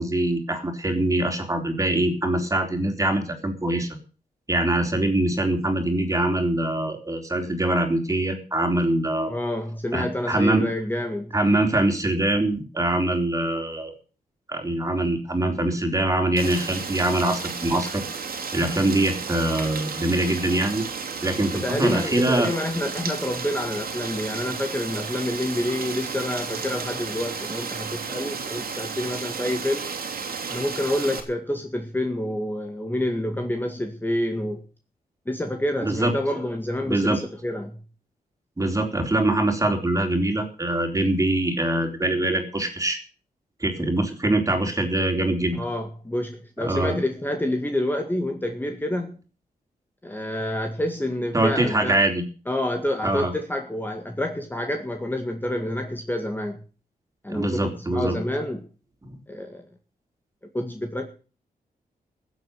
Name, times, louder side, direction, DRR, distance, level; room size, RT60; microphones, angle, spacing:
voice 1, 0.0-3.9 4.5-9.3 9.9-10.6 11.3-13.9 14.5-18.0 18.5-20.8 21.2-22.5 35.8-36.1 36.9-37.2 38.6-43.0 43.6-45.6 46.6-47.0 51.3-52.2 53.0-53.3 57.3-58.2 59.0-59.2, right 1 dB, 20° right, 5 dB, 4.0 m, -23 dB
voice 2, 9.3-11.3 21.5-29.9 30.5-34.6 35.3-37.8 45.6-49.2 50.0-52.0 52.5-56.6 57.2-58.6 59.3-59.6 60.5-61.1, left 1 dB, 10° left, 4 dB, 2.0 m, -28 dB
Rain, 16.4-31.2, right 5 dB, 75° right, 2.9 m, -33 dB
15.0 x 8.1 x 8.3 m, 0.37 s
cardioid pair, 90°, 15 cm